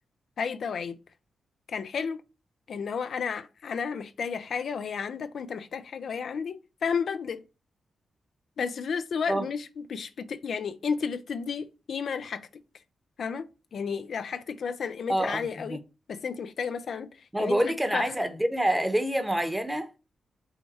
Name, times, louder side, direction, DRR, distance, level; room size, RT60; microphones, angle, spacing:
voice 1, 0.4-1.0 1.7-2.2 2.7-7.4 8.6-12.5 13.2-15.8 16.1-18.1, left 6 dB, 70° left, 0.4 m, -32 dB
voice 2, 15.1-15.8 17.3-19.9, right 1 dB, 10° right, 0.9 m, -27 dB
5.5 x 2.2 x 4.2 m
hypercardioid pair, 40°, 0 cm